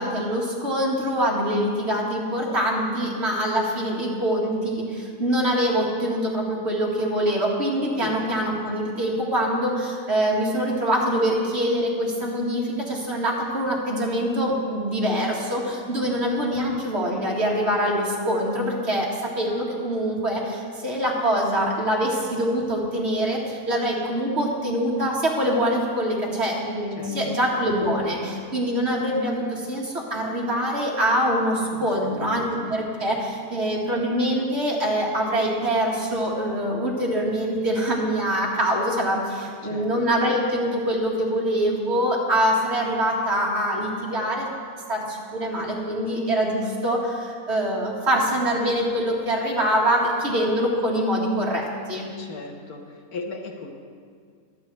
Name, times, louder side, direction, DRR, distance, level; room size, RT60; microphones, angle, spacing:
voice 1, 0.0-44.5 44.9-52.1, equal, 45° right, -3 dB, 2.1 m, -24 dB
voice 2, 27.0-27.4 31.7-32.6 39.6-40.1 52.2-53.7, left 3 dB, 80° left, 2 dB, 1.7 m, -38 dB
23.0 x 8.2 x 3.3 m, 2.1 s
omnidirectional pair, 1.6 m